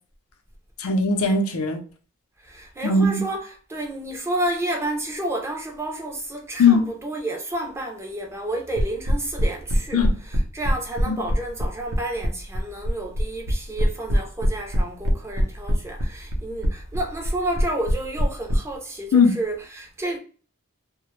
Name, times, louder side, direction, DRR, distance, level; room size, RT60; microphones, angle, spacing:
voice 1, 0.8-1.8 2.8-3.2 6.6-6.8 9.9-10.1 11.1-11.2 19.1-19.3, left 4 dB, 85° left, 0.5 m, -19 dB
voice 2, 2.4-20.2, right 1 dB, 10° right, 0.4 m, -30 dB
sound 1, 8.8-18.6, equal, 80° right, 0.6 m, -22 dB
2.1 x 2.0 x 3.0 m
head